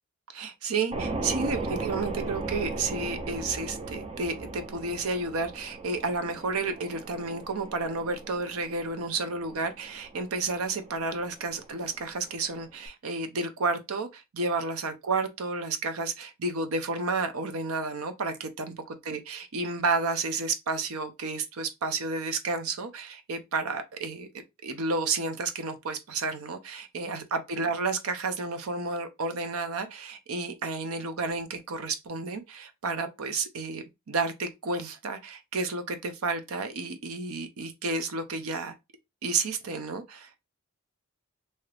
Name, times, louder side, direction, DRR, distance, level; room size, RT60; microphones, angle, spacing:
voice 1, 0.3-24.3 24.6-38.7 39.2-40.4, right 3 dB, 75° right, 0.6 m, -31 dB
sound 1, 0.9-12.9, right 3 dB, 25° right, 0.4 m, -38 dB
2.7 x 2.4 x 3.3 m
head